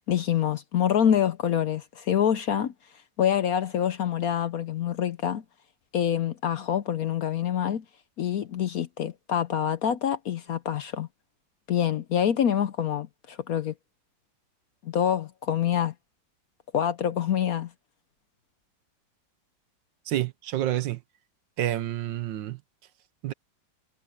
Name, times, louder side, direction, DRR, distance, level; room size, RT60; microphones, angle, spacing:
voice 1, 0.1-2.7 3.2-5.4 5.9-7.8 8.2-11.1 11.7-13.7 14.8-15.9 16.7-17.7, left 9 dB, 65° left, 1.0 m, -26 dB
voice 2, 20.1-21.0 21.6-22.6 23.2-23.3, right 13 dB, 75° right, 1.4 m, -28 dB
omnidirectional pair, 2.1 m